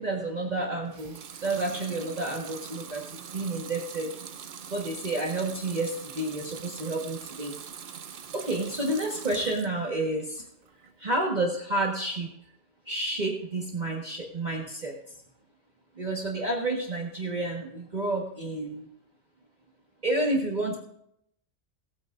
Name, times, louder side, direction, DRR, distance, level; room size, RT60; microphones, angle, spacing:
voice 1, 0.0-4.1 4.7-7.5 8.3-10.4 11.0-12.3 12.9-14.9 16.0-18.9 20.0-20.8, right 2 dB, 35° right, -1 dB, 1.6 m, -30 dB
Water tap faucet / Sink (filling or washing) / Liquid, 0.9-9.8 10.2-10.9, right 7 dB, 55° right, 0.8 m, -43 dB
18.5 x 9.4 x 2.5 m, 0.74 s
omnidirectional pair, 1.3 m